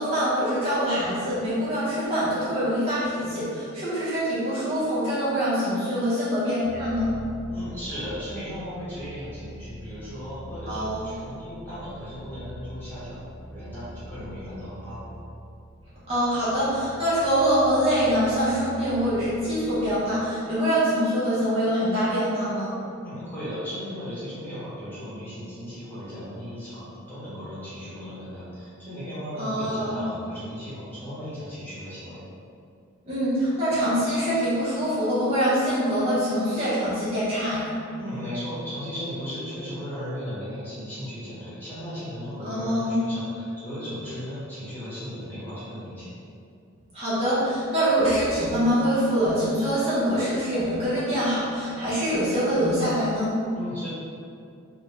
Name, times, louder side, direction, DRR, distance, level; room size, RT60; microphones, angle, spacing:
voice 1, 0.0-7.1 10.7-11.1 16.1-22.8 29.4-30.0 33.0-37.7 42.4-43.0 46.9-53.4, equal, 30° right, -12 dB, 0.9 m, -24 dB
sound 1, 6.6-19.8, left 1 dB, 70° left, 0.5 m, -42 dB
voice 2, 7.5-13.2 13.5-15.1 23.0-32.2 38.0-46.1 53.5-53.9, equal, 10° left, -12 dB, 1.2 m, -36 dB
3.5 x 2.2 x 3.2 m, 2.4 s
head